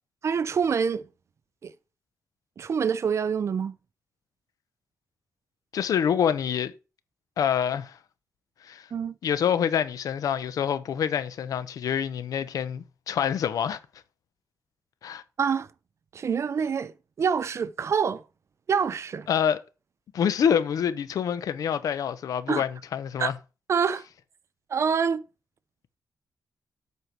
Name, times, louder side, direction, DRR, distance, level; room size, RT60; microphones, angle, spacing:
voice 1, 0.2-1.0 1.6-1.7 2.6-3.7 8.9-9.1 15.4-15.7 16.1-18.2 18.7-19.3 22.5-22.6 23.2-23.3 23.7-24.0 24.7-25.2, right 6 dB, 55° right, 0.6 m, -26 dB
voice 2, 5.7-6.7 7.4-8.0 8.6-8.9 9.2-13.8 15.0-15.2 19.3-19.6 20.1-23.4, left 8 dB, 85° left, 0.8 m, -26 dB
8.3 x 4.5 x 6.0 m
cardioid pair, 110°, 6 cm